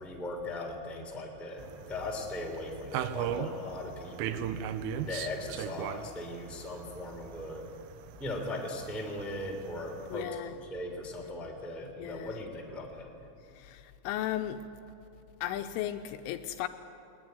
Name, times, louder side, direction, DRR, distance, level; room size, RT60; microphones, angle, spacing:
voice 1, 0.0-4.5 5.0-7.7 8.2-10.3 10.7-13.1, left 1 dB, ahead, 1 dB, 1.9 m, -38 dB
sound 1, 1.6-10.2, right 9 dB, 80° right, 3.4 m, -39 dB
voice 2, 10.1-10.5 12.0-12.4 13.5-14.6 15.4-16.7, left 12 dB, 80° left, 8 dB, 3.1 m, -35 dB
21.0 x 20.5 x 9.5 m, 2.7 s
omnidirectional pair, 5.9 m